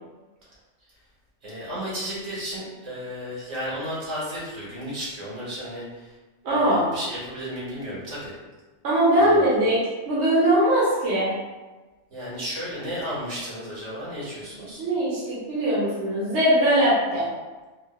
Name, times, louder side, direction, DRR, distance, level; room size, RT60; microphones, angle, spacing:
voice 1, 1.4-6.1 6.5-8.3 9.1-9.5 12.1-14.8, equal, 90° right, -7 dB, 1.6 m, -33 dB
voice 2, 6.4-6.9 8.8-9.8 10.1-11.3 14.8-17.3, right 1 dB, 70° right, -8 dB, 1.1 m, -21 dB
3.9 x 2.4 x 2.3 m, 1.2 s
omnidirectional pair, 1.2 m